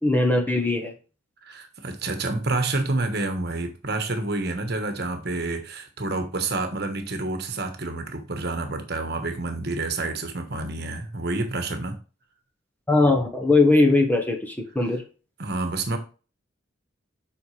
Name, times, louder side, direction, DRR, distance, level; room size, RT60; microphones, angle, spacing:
voice 1, 0.0-0.9 12.9-15.0, left 2 dB, 10° left, 1.0 m, -20 dB
voice 2, 1.4-12.0 15.4-16.0, right 2 dB, 55° right, 1.3 m, -28 dB
7.9 x 5.2 x 3.3 m
head